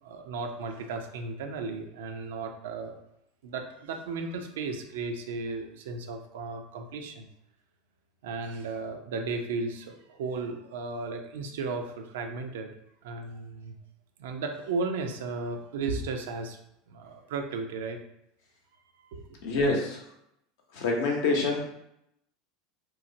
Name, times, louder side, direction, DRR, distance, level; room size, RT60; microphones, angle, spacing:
voice 1, 0.0-3.0 3.4-7.3 8.2-12.7 13.0-13.7 14.2-16.6 16.9-18.0 19.1-19.2, right 4 dB, 75° right, 4 dB, 0.4 m, -35 dB
voice 2, 19.4-20.0 20.7-21.7, left 3 dB, 70° left, 0 dB, 0.7 m, -26 dB
3.0 x 2.0 x 2.6 m, 0.78 s
hypercardioid pair, 80°, 0 cm